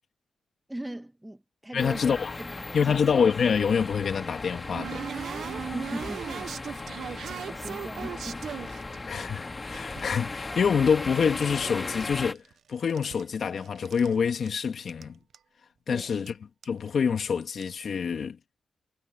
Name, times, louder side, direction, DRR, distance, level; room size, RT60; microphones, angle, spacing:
voice 1, 0.7-2.0 2.4-3.0 5.7-6.7 7.5-8.5 15.9-16.1, right 1 dB, 10° right, 1.4 m, -39 dB
voice 2, 1.7-2.3 2.7-5.3 9.1-12.4 12.7-15.2 15.9-16.4 16.6-18.4, left 6 dB, 65° left, 2.4 m, -26 dB
sound 1, 1.8-12.3, left 3 dB, 25° left, 2.3 m, -37 dB
sound 2, 4.0-9.3 9.7-11.5 11.8-12.5 12.8-14.1 14.5-14.6 14.8-15.0 15.3-15.4 16.3-16.4 16.6-16.9 17.4-17.7, right 8 dB, 80° right, 0.8 m, -39 dB
cardioid pair, 90°, 0 cm